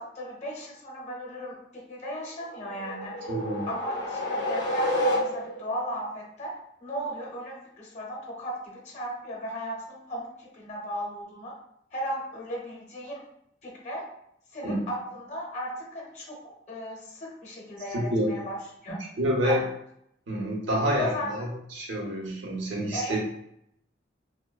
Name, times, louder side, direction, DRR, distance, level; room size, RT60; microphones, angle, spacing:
voice 1, 0.0-3.3 3.7-11.6 11.9-13.2 13.6-14.1 14.5-18.6 18.8-19.0 19.4-19.6 21.0-21.5 22.9-23.3, equal, 40° left, -2 dB, 0.6 m, -36 dB
sound 1, 2.5-5.8, left 1 dB, 80° left, 0.5 m, -29 dB
voice 2, 3.3-3.7 14.6-14.8 17.9-18.3 19.2-19.6 20.3-21.5 21.7-23.3, equal, 85° right, -2 dB, 0.7 m, -27 dB
2.6 x 2.1 x 2.3 m, 0.74 s
head